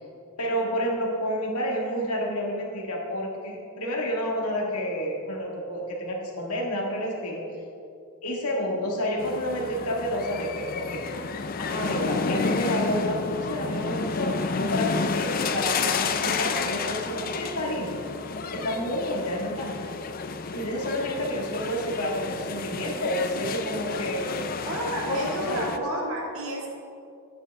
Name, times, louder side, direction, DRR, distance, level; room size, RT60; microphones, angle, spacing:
voice 1, 0.4-7.4 8.2-11.1 11.7-18.0 18.5-19.8 20.5-24.3 25.1-25.9, equal, 90° left, -1 dB, 1.9 m, -29 dB
sound 1, 9.2-25.8, left 4 dB, 40° left, 0.4 m, -31 dB
voice 2, 24.6-26.7, right 1 dB, 70° right, -2 dB, 2.1 m, -31 dB
10.5 x 9.1 x 3.5 m, 2.5 s
head